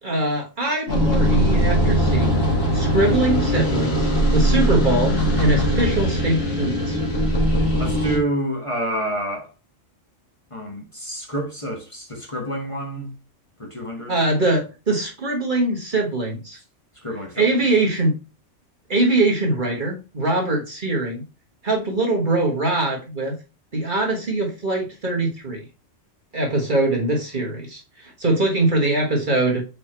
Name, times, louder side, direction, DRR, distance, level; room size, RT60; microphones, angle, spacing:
voice 1, 0.0-2.4 2.7-7.0 14.1-16.6 17.4-18.2 18.9-21.2 21.6-23.4 23.7-25.6 26.3-29.7, right 2 dB, 40° right, 1.4 m, -22 dB
sound 1, 0.9-8.2, equal, 55° left, 2.3 m, -20 dB
voice 2, 7.8-9.5 10.5-13.1 13.6-14.2 17.0-17.4, right 1 dB, 25° left, 1.4 m, -28 dB
5.0 x 4.5 x 4.3 m
omnidirectional pair, 1.3 m